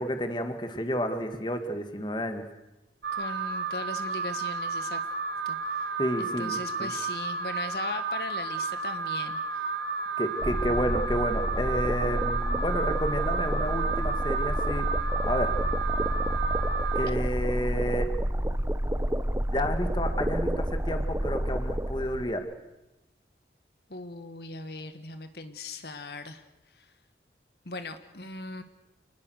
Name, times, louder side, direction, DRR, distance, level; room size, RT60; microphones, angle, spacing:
voice 1, 0.0-2.5 6.0-6.9 10.2-14.9 15.2-15.5 16.9-18.1 19.5-22.4, equal, 25° left, 7 dB, 2.1 m, -30 dB
Alarm, 3.0-17.1, right 4 dB, 85° right, 2.4 m, -32 dB
voice 2, 3.1-5.0 5.5-5.9 6.2-9.7 23.9-26.4 26.8-26.9 27.7-28.6, left 3 dB, 70° left, 9 dB, 1.6 m, -39 dB
sound 1, 10.4-22.3, right 1 dB, 15° right, 0.8 m, -29 dB
28.5 x 20.0 x 6.6 m, 0.98 s
head